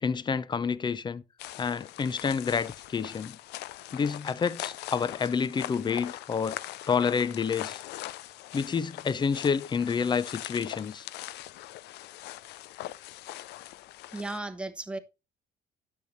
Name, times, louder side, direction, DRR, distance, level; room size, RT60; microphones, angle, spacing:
voice 1, 0.0-1.2 1.6-3.4 3.9-6.6 6.9-7.8 8.5-11.0, left 6 dB, 25° left, 0.6 m, -29 dB
sound 1, 1.4-14.4, left 15 dB, 80° left, 0.5 m, -41 dB
voice 2, 14.1-15.0, right 2 dB, 5° right, 1.1 m, -35 dB
10.0 x 6.6 x 4.1 m
cardioid pair, 110°, 17 cm